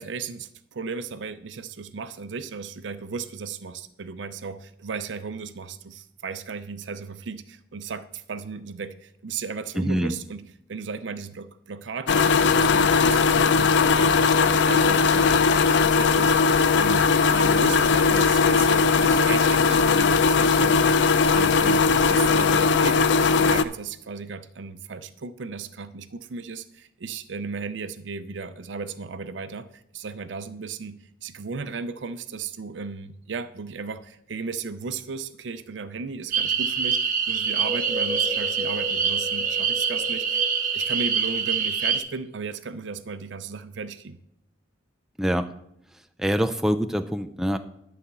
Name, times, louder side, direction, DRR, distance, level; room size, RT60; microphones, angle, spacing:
voice 1, 0.0-10.4 10.7-40.5 40.7-44.2, right 5 dB, 85° right, 12 dB, 0.6 m, -35 dB
voice 2, 9.8-10.2 45.2-45.5 46.2-47.6, equal, 5° right, 7 dB, 0.4 m, -24 dB
sound 1, 12.1-23.6, left 5 dB, 70° left, 0.4 m, -19 dB
sound 2, 36.3-42.0, right 6 dB, 50° right, 0.9 m, -25 dB
sound 3, 37.4-42.0, left 2 dB, 25° right, 1.3 m, -36 dB
11.0 x 4.2 x 6.8 m, 0.76 s
head